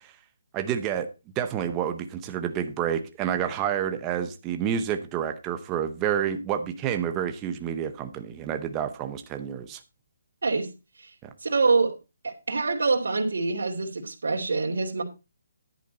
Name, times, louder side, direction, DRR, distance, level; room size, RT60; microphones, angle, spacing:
voice 1, 0.5-1.1 1.4-9.8 11.2-11.3, right 9 dB, 10° right, 0.7 m, -29 dB
voice 2, 11.4-12.0 12.2-15.0, right 4 dB, 70° right, 2.8 m, -25 dB
10.5 x 9.2 x 4.1 m
hypercardioid pair, 180°, 0 cm